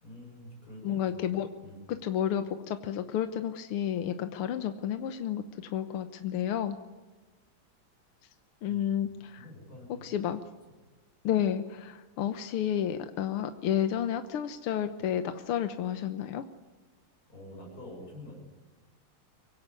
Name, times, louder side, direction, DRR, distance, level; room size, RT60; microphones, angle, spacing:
voice 1, 0.0-1.2 1.6-1.8 8.7-8.9 9.4-10.1 17.3-18.4, left 1 dB, 40° left, -3 dB, 7.6 m, -47 dB
voice 2, 0.8-1.5 1.9-6.8 8.6-9.5 10.0-10.4 11.2-16.4, left 10 dB, 85° left, 9 dB, 1.9 m, -31 dB
24.5 x 17.0 x 9.7 m, 1.2 s
omnidirectional pair, 2.4 m